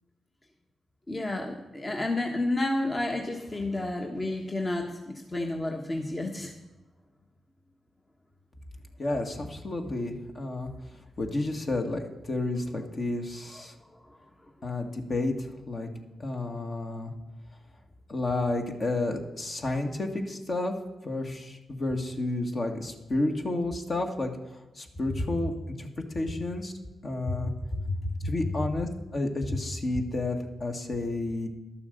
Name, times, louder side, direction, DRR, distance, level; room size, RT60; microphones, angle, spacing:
voice 1, 1.1-6.5 13.5-14.2 27.3-27.4 27.7-28.3, left 2 dB, 30° left, 2 dB, 1.3 m, -31 dB
voice 2, 9.0-10.7 11.2-13.8 14.6-15.9 16.2-17.1 18.1-20.7 21.0-25.5 25.8-25.9 26.1-26.7 27.0-27.5 28.2-31.5, left 2 dB, 50° left, 3 dB, 1.8 m, -31 dB
11.5 x 7.0 x 6.8 m, 1.1 s
cardioid pair, 60°, 0 cm